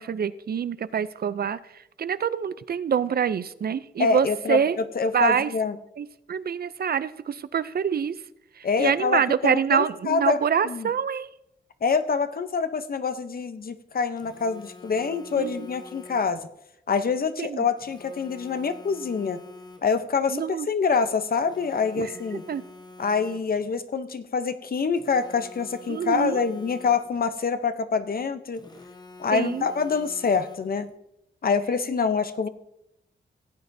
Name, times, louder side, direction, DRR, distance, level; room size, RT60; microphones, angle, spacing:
voice 1, 0.0-4.8 5.1-5.5 6.0-8.2 8.6-11.3 15.4-15.7 17.4-17.6 20.3-20.7 22.0-22.1 22.5-22.6 25.9-26.4 29.3-29.7, right 7 dB, 55° right, 15 dB, 0.4 m, -26 dB
voice 2, 4.0-5.8 8.6-10.4 10.6-10.9 11.8-16.5 16.9-19.4 19.8-22.4 23.0-28.6 29.2-30.9 31.4-32.5, left 5 dB, 50° left, 10 dB, 0.7 m, -26 dB
Telephone, 14.2-16.5 17.8-20.1 21.4-23.7 24.9-27.3 28.5-30.9, left 3 dB, 20° left, 0.9 m, -47 dB
16.0 x 8.9 x 2.7 m, 0.81 s
wide cardioid pair, 105°, 19 cm